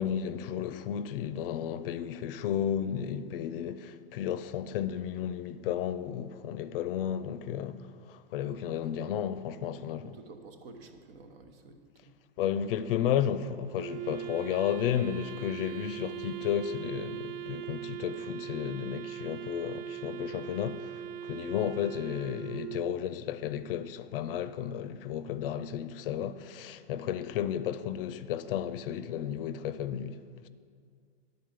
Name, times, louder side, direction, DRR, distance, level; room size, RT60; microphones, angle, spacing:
voice 1, 0.0-10.1 12.4-30.5, left 9 dB, 60° left, 0.5 m, -33 dB
voice 2, 10.0-12.1, right 3 dB, 70° right, 1.0 m, -51 dB
Wind instrument woodwind instrument, 13.8-23.0, right 11 dB, 45° right, 0.5 m, -40 dB
10.0 x 4.1 x 6.4 m
hypercardioid pair, 125°, 31 cm